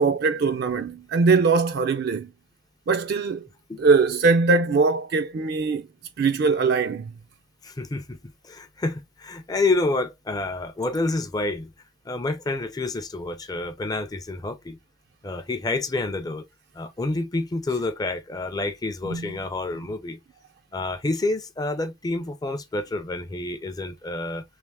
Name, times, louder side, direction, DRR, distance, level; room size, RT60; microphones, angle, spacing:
voice 1, 0.0-2.3 2.9-3.5 3.8-5.9 6.2-7.1 19.0-19.3, right 4 dB, 50° right, 0.4 m, -21 dB
voice 2, 7.6-8.2 8.4-11.7 12.1-14.8 15.2-16.4 16.7-20.2 20.7-24.4, left 2 dB, 20° left, 0.4 m, -28 dB
3.3 x 2.8 x 3.4 m
head